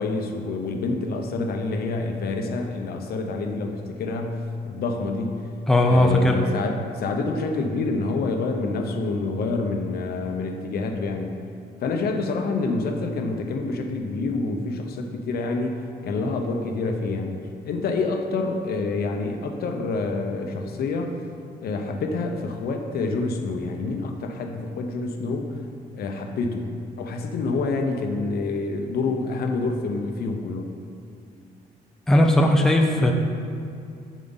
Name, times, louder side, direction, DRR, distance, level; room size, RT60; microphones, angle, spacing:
voice 1, 0.0-5.5 5.9-11.3 11.8-17.4 17.6-21.2 21.6-25.6 25.9-30.7, left 3 dB, 65° left, 4 dB, 0.8 m, -27 dB
voice 2, 5.7-6.4 32.1-33.1, left 1 dB, 5° left, 1 dB, 0.5 m, -17 dB
8.3 x 7.4 x 4.0 m, 2.4 s
cardioid pair, 160°, 17 cm